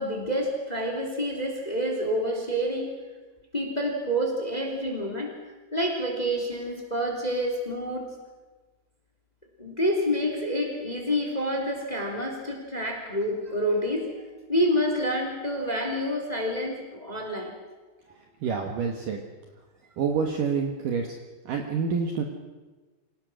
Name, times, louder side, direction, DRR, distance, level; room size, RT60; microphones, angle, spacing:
voice 1, 0.0-2.9 3.5-5.3 5.7-8.0 9.6-17.5, equal, 10° left, 2 dB, 2.6 m, -28 dB
voice 2, 18.4-19.2 20.0-21.1 21.5-22.2, right 6 dB, 65° right, 3 dB, 2.4 m, -27 dB
27.0 x 17.5 x 6.2 m, 1.3 s
omnidirectional pair, 5.2 m